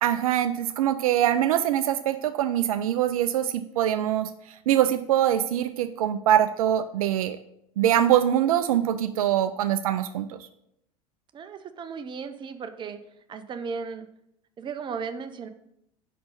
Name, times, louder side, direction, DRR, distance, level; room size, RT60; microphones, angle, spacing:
voice 1, 0.0-4.3 4.7-7.4 7.8-10.4, right 11 dB, 70° right, 10 dB, 0.4 m, -23 dB
voice 2, 11.3-13.0 13.3-14.1 14.6-15.5, right 5 dB, 25° right, 9 dB, 0.6 m, -35 dB
5.4 x 4.2 x 5.5 m, 0.75 s
figure-of-eight pair, 80°, 19 cm